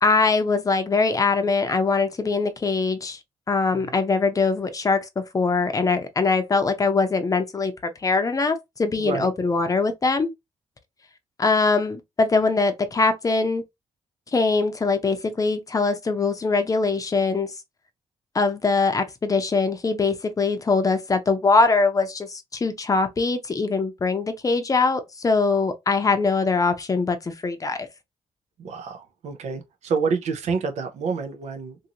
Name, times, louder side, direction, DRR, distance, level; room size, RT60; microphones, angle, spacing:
voice 1, 0.0-3.2 3.5-5.1 5.3-7.7 8.0-10.3 11.4-13.6 14.3-17.5 18.3-27.9, left 4 dB, 30° left, 0.6 m, -22 dB
voice 2, 28.6-31.8, right 5 dB, 75° right, 0.7 m, -28 dB
2.7 x 2.6 x 2.9 m
cardioid pair, 90°, 12 cm